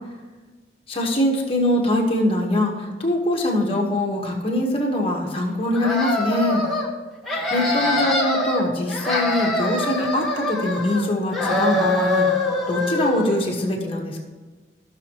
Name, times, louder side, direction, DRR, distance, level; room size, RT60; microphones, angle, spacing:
voice 1, 0.9-6.6 7.5-12.3 12.7-14.2, left 1 dB, 30° left, 0 dB, 1.4 m, -23 dB
sound 1, 5.7-6.9 7.2-8.6 8.9-11.1 11.3-13.3, left 1 dB, ahead, 1.6 m, -24 dB
14.5 x 6.5 x 3.1 m, 1.3 s
head